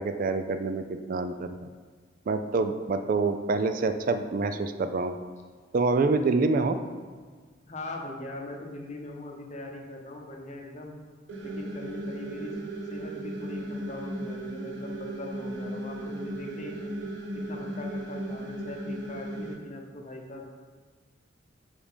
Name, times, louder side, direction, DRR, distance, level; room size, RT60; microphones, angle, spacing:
voice 1, 0.0-1.6 2.3-5.2 5.7-6.8, right 3 dB, 45° right, 9 dB, 0.3 m, -26 dB
voice 2, 7.7-11.0 11.4-12.5 12.9-17.0 17.3-20.4, left 2 dB, 40° left, 2 dB, 0.8 m, -41 dB
sound 1, 11.3-19.5, right 1 dB, 80° right, 1.0 m, -36 dB
5.1 x 4.9 x 5.1 m, 1.5 s
head